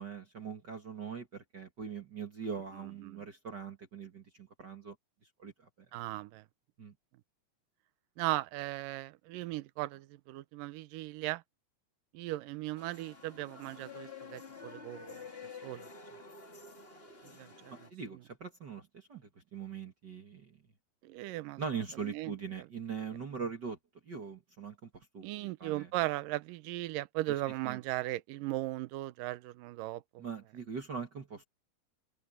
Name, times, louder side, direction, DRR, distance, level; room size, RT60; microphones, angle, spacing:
voice 1, 0.0-4.9 5.4-5.7 6.8-6.9 17.7-20.6 21.6-23.8 24.0-25.9 27.6-27.8 30.2-31.4, right 6 dB, 50° right, 1.3 m, -42 dB
voice 2, 5.9-6.4 8.2-11.4 12.1-15.2 15.6-15.9 17.4-17.9 21.0-21.6 22.0-22.3 25.2-30.2, right 17 dB, 80° right, 2.0 m, -37 dB
sound 1, 12.8-17.9, left 5 dB, 20° left, 1.6 m, -49 dB
open air
omnidirectional pair, 4.7 m